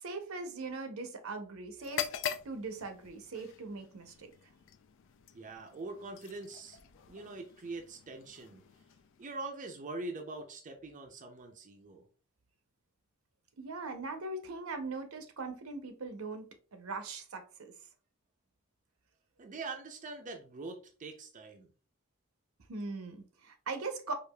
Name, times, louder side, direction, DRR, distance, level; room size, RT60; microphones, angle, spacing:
voice 1, 0.0-2.1 2.4-4.3 13.6-17.7 22.7-24.1, right 3 dB, 75° right, 0.7 m, -40 dB
sound 1, 1.8-9.6, left 9 dB, 60° left, 0.3 m, -44 dB
voice 2, 5.3-6.8 7.1-8.6 9.2-12.0 19.4-21.7, right 3 dB, 35° right, 0.5 m, -43 dB
4.7 x 2.4 x 2.2 m
head